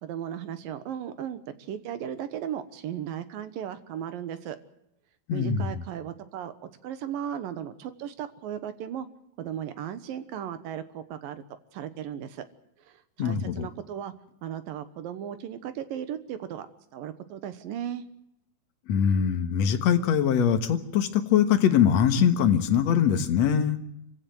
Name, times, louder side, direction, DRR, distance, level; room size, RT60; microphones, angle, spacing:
voice 1, 0.0-4.6 5.3-9.1 9.4-11.4 11.7-12.5 12.8-14.1 14.4-16.7 16.9-18.0, right 9 dB, 70° right, 12 dB, 2.7 m, -36 dB
voice 2, 5.3-5.8 13.2-13.7 18.9-23.8, left 8 dB, 55° left, 7 dB, 2.1 m, -22 dB
25.5 x 16.5 x 7.8 m, 0.82 s
omnidirectional pair, 4.6 m